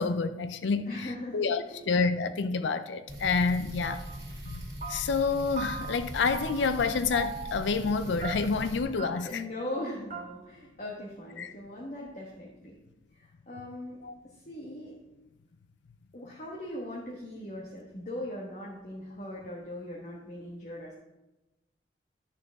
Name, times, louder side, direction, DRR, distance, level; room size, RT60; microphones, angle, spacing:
voice 1, 0.0-4.0 4.4-4.6 4.9-9.4 11.4-11.5 14.0-14.1, left 4 dB, 80° left, 11 dB, 0.5 m, -28 dB
voice 2, 0.9-1.4 1.7-1.9 9.2-12.8 13.5-14.0 14.5-14.9 16.1-20.9, left 1 dB, 45° left, -4 dB, 1.3 m, -39 dB
sound 1, 3.1-8.8, equal, 15° right, 2.5 m, -41 dB
sound 2, 3.8-4.2 4.5-5.3 5.6-6.1 6.3-6.9 7.1-7.7 8.2-8.7 9.0-9.1 9.4-9.5 9.7-9.8 10.1-10.2, right 5 dB, 45° right, 1.7 m, -39 dB
11.0 x 6.8 x 3.5 m, 0.99 s
head